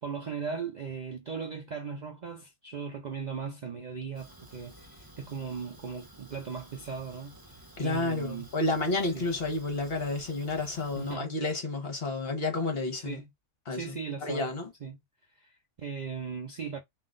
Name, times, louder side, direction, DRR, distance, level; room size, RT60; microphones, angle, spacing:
voice 1, 0.0-8.5 9.1-9.3 11.0-11.3 13.0-13.3 13.7-14.5 14.8-15.0 15.3-16.8, right 6 dB, 80° right, 0.4 m, -38 dB
Fire, 4.1-11.2, right 1 dB, 15° right, 1.0 m, -53 dB
voice 2, 7.8-13.2 13.7-13.9 14.2-14.7, left 2 dB, 45° left, 1.2 m, -30 dB
3.7 x 2.7 x 3.7 m
omnidirectional pair, 1.5 m